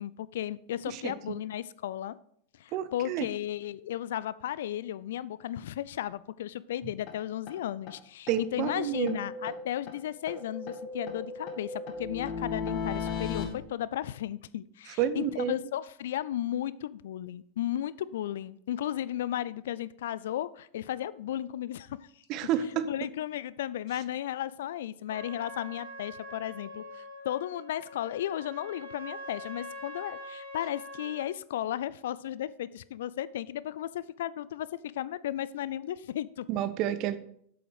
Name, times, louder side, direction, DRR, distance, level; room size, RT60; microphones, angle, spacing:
voice 1, 0.0-2.2 2.6-22.0 22.8-34.7 34.9-36.5, left 12 dB, 65° left, 18 dB, 0.4 m, -35 dB
voice 2, 2.7-3.3 8.3-9.2 15.0-15.5 22.3-22.9 36.5-37.2, right 10 dB, 45° right, 13 dB, 0.8 m, -30 dB
sound 1, 7.1-7.2 7.5-7.6 7.9-8.0 8.3-8.4 8.7-10.0 10.3-13.5, left 5 dB, 45° left, 1.8 m, -36 dB
Trumpet, 25.1-31.3, left 1 dB, 80° right, 2.3 m, -44 dB
7.9 x 7.7 x 5.0 m, 0.66 s
figure-of-eight pair, 90°, 0 cm